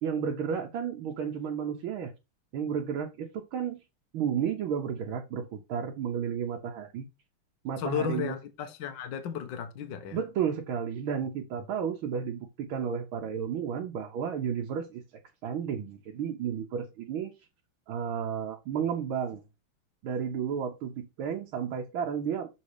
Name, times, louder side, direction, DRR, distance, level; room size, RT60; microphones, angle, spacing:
voice 1, 0.0-2.1 2.5-3.8 4.1-7.1 7.6-8.4 10.1-15.0 15.4-17.3 17.9-19.4 20.0-22.5, right 7 dB, 75° right, 1.7 m, -32 dB
voice 2, 7.8-10.2, left 8 dB, 65° left, 1.6 m, -34 dB
6.7 x 4.2 x 4.9 m
omnidirectional pair, 2.3 m